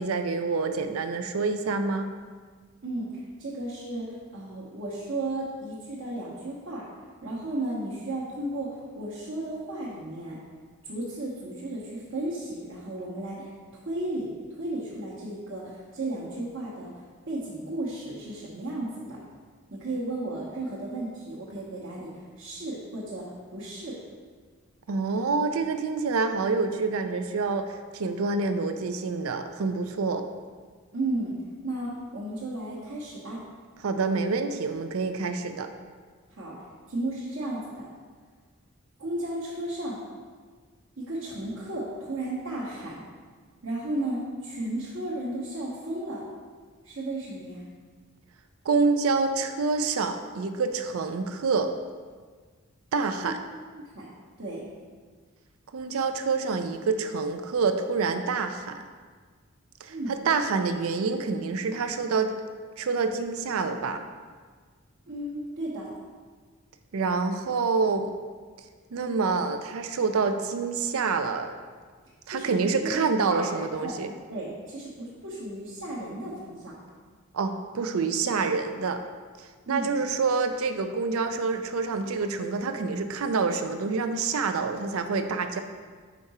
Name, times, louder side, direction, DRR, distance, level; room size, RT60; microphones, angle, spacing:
voice 1, 0.0-2.1 24.9-30.3 33.8-35.7 48.7-51.7 52.9-53.4 55.7-58.8 59.8-62.3 62.8-64.0 66.9-68.1 68.9-71.5 72.3-74.1 77.3-79.0 79.4-85.6, right 4 dB, 80° right, 8 dB, 0.4 m, -27 dB
voice 2, 2.8-6.8 7.2-10.4 10.8-14.3 14.6-19.2 19.7-23.2 23.5-24.0 30.9-31.3 31.6-33.4 36.3-36.6 36.9-37.9 39.0-40.0 41.0-42.9 43.6-46.2 46.8-47.7 53.2-53.3 53.7-54.1 54.4-54.6 59.9-60.2 65.1-65.9 72.3-74.0 74.3-76.7 79.7-79.9, right 1 dB, 60° right, -7 dB, 1.0 m, -34 dB
5.1 x 4.7 x 4.1 m, 1.5 s
head